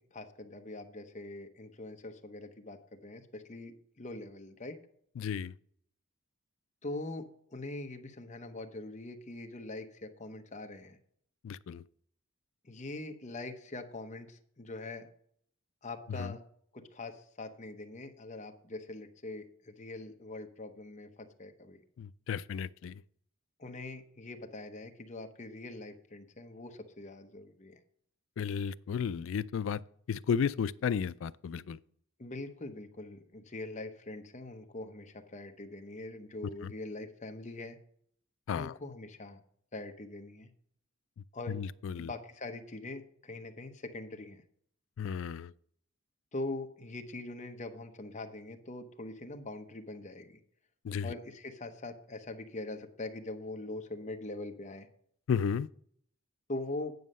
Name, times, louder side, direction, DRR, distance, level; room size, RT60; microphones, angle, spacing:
voice 1, 0.0-4.8 6.8-11.0 12.6-15.1 15.8-16.4 16.7-21.8 23.6-27.8 32.2-37.8 38.5-39.4 39.7-40.5 41.3-41.6 42.0-44.4 46.3-50.4 51.0-54.9 56.5-56.9, left 2 dB, 35° left, 0.8 m, -43 dB
voice 2, 5.2-5.5 11.4-11.8 16.2-16.3 22.0-22.9 28.4-29.8 30.1-31.8 36.6-36.7 38.5-38.7 41.5-42.1 45.0-45.5 50.8-51.2 55.3-55.7, left 7 dB, 65° left, 0.3 m, -33 dB
9.4 x 6.2 x 5.4 m
head